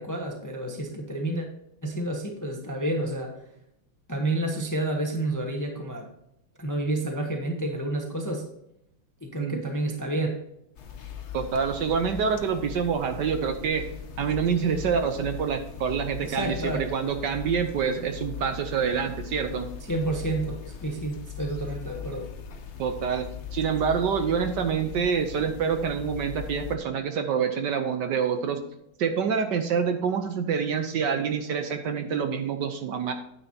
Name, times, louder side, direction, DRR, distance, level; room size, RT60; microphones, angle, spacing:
voice 1, 0.0-1.5 1.8-3.4 4.1-6.1 6.6-8.4 9.2-10.4 16.2-16.9 19.9-22.3, right 2 dB, 15° left, 2 dB, 0.8 m, -30 dB
sound 1, 10.8-26.8, left 8 dB, 65° left, 0.7 m, -39 dB
voice 2, 11.3-13.9 14.2-19.7 22.8-23.3 23.5-28.6 29.0-33.1, right 6 dB, 65° right, 7 dB, 1.3 m, -26 dB
9.6 x 9.0 x 2.8 m, 0.79 s
omnidirectional pair, 2.2 m